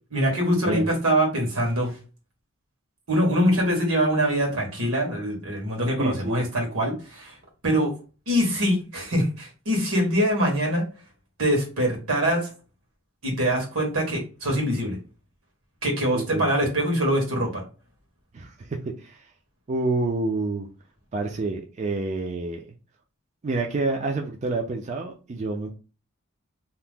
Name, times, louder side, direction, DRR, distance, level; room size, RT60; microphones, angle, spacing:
voice 1, 0.1-1.9 3.1-7.3 7.6-7.9 8.3-10.8 11.4-12.5 13.2-15.0 15.8-17.6, equal, 90° right, -1 dB, 1.3 m, -23 dB
voice 2, 6.0-6.4 16.1-16.4 18.3-18.5 19.0-19.2 19.7-20.7 21.1-22.6 23.4-25.7, right 2 dB, 35° right, 2 dB, 0.4 m, -28 dB
2.8 x 2.0 x 3.4 m, 0.33 s
head